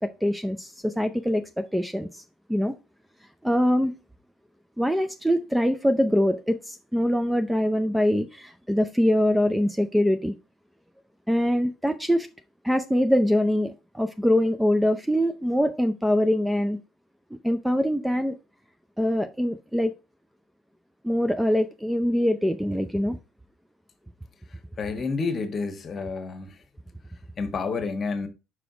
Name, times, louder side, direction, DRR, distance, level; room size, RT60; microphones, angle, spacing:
voice 1, 0.0-2.2 2.5-2.8 3.4-3.9 4.8-10.3 11.3-12.3 12.6-16.8 17.4-18.4 19.0-19.9 21.0-23.2, equal, 5° right, 0.5 m, -23 dB
voice 2, 24.8-26.5 27.4-28.3, left 4 dB, 35° left, 1.3 m, -29 dB
5.0 x 5.0 x 4.9 m
hypercardioid pair, 70°, 0 cm